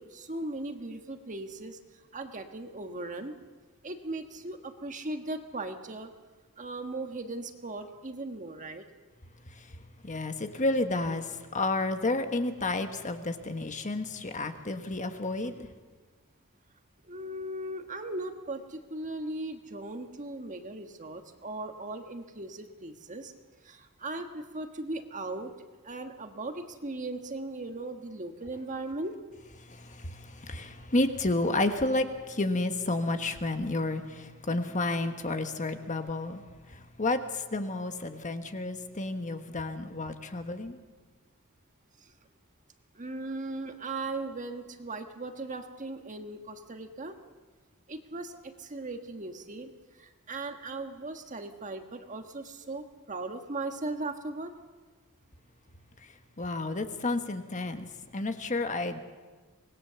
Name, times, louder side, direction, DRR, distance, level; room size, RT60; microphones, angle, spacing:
voice 1, 0.0-1.8 2.1-3.4 3.8-6.1 6.6-8.8 17.0-23.3 23.6-25.5 25.8-29.2 42.0-42.1 42.9-47.2 47.9-49.7 50.0-54.5, right 2 dB, 35° right, 6 dB, 1.5 m, -38 dB
voice 2, 10.0-15.7 29.7-36.4 36.7-40.8 56.4-57.9 58.1-59.0, left 2 dB, 35° left, 7 dB, 1.3 m, -31 dB
25.0 x 19.5 x 7.0 m, 1.4 s
head